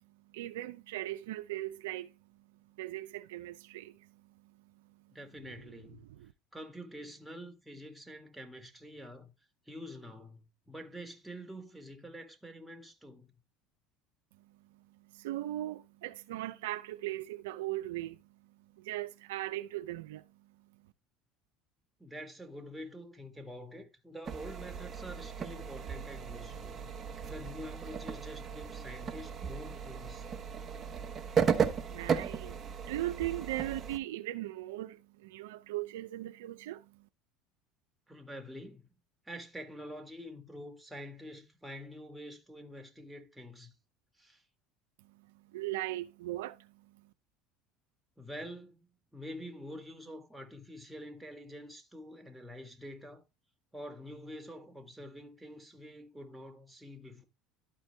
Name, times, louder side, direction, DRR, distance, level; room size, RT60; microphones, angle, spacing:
voice 1, 0.0-5.2 5.9-6.3 14.3-20.9 31.5-37.1 45.0-47.1, right 15 dB, 85° right, 0.5 m, -40 dB
voice 2, 5.1-6.0 6.5-9.3 9.7-13.3 22.0-26.9 27.2-30.3 38.1-38.9 39.3-43.7 44.2-44.4 48.2-53.2 53.7-57.2, equal, 5° right, 1.8 m, -47 dB
sound 1, 24.3-34.0, right 6 dB, 35° right, 1.0 m, -35 dB
12.0 x 4.5 x 3.3 m
supercardioid pair, 95°, 0 cm